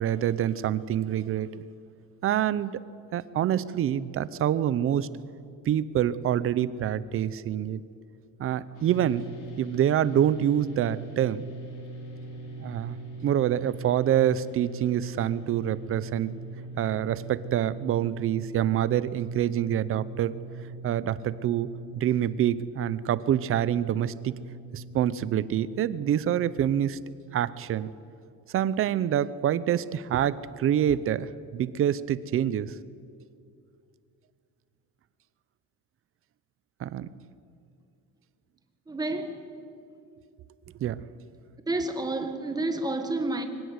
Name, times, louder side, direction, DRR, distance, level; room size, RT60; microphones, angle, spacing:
voice 1, 0.0-1.6 2.2-2.8 3.1-5.1 5.7-7.8 8.4-9.3 9.6-11.5 12.6-16.4 16.8-20.3 20.8-21.7 22.0-24.3 24.7-27.0 27.3-27.9 28.5-32.7 36.8-37.1 40.8-41.0, right 10 dB, 40° right, 0.7 m, -26 dB
sound 1, 8.7-26.2, right 2 dB, 70° left, 5.8 m, -41 dB
voice 2, 38.9-39.4 41.7-43.5, right 2 dB, 10° right, 1.6 m, -29 dB
24.0 x 17.0 x 9.6 m
cardioid pair, 170°, 32 cm